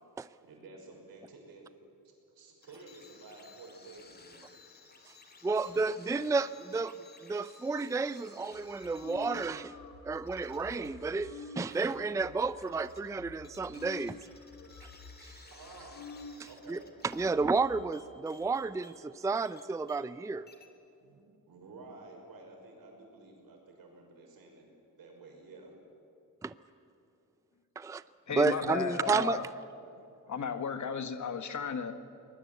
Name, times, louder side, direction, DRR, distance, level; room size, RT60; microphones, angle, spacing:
voice 1, 0.4-1.6 2.3-4.4 15.3-16.1 16.5-16.9 21.0-24.7 25.0-25.7 28.4-28.9, right 3 dB, 90° right, 1 dB, 5.8 m, -52 dB
sound 1, 2.6-20.2 20.5-20.7, left 3 dB, 30° left, 2.3 m, -57 dB
voice 2, 5.4-7.0 7.2-9.8 10.1-14.2 15.2-15.3 16.7-20.4 26.4-26.5 27.8-28.0 28.3-29.4, right 4 dB, 10° right, 15 dB, 0.4 m, -31 dB
sound 2, 8.6-16.4 16.8-16.9 17.1-17.8, left 5 dB, 70° left, 2.4 m, -49 dB
voice 3, 28.3-29.5 30.3-31.9, left 6 dB, 55° left, 9 dB, 1.5 m, -34 dB
23.5 x 20.0 x 8.2 m, 2.8 s
wide cardioid pair, 120°, 34 cm